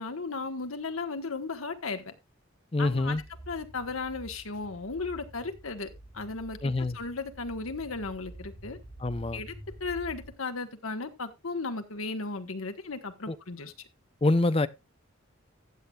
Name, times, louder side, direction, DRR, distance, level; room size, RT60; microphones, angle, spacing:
voice 1, 0.0-2.1 2.8-8.8 9.3-9.5 9.8-13.9, left 3 dB, 85° left, 1.4 m, -36 dB
voice 2, 2.7-3.2 6.6-7.0 9.0-9.4 13.3-13.4 14.2-14.7, left 2 dB, 25° left, 0.6 m, -25 dB
sound 1, 2.8-10.3, right 1 dB, 55° left, 3.6 m, -48 dB
14.5 x 8.7 x 2.3 m
head